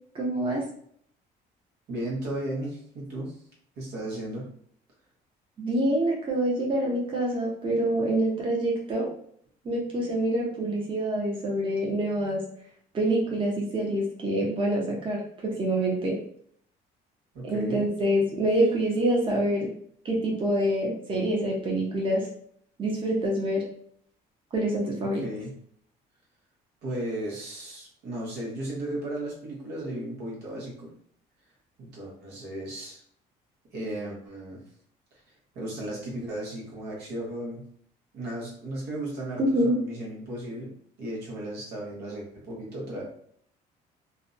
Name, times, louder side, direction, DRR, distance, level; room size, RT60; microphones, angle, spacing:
voice 1, 0.1-0.6 5.6-9.1 9.6-12.4 12.9-16.2 17.4-19.7 20.0-22.3 22.8-23.7 24.5-25.2 39.4-39.8, right 1 dB, 30° right, -2 dB, 0.7 m, -26 dB
voice 2, 1.9-3.4 3.8-4.5 17.3-17.8 25.2-25.5 26.8-30.9 31.8-33.0 33.7-34.6 35.5-37.6 38.1-40.7 41.0-43.0, right 1 dB, 75° right, -3 dB, 1.0 m, -35 dB
2.5 x 2.1 x 2.5 m, 0.65 s
cardioid pair, 110°, 17 cm